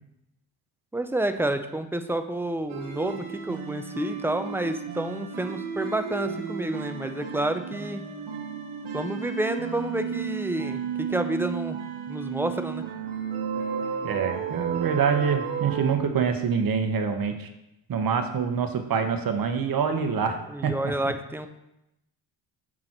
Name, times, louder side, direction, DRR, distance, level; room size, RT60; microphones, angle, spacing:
voice 1, 0.9-8.0 8.9-11.8 12.1-12.9 20.5-21.5, right 1 dB, 5° right, 8 dB, 0.5 m, -29 dB
sound 1, 2.7-16.0, right 6 dB, 80° right, 1.0 m, -33 dB
voice 2, 14.0-17.5 17.9-20.9, right 6 dB, 45° right, 6 dB, 1.1 m, -26 dB
6.1 x 3.8 x 5.9 m, 0.88 s
supercardioid pair, 65°, 47 cm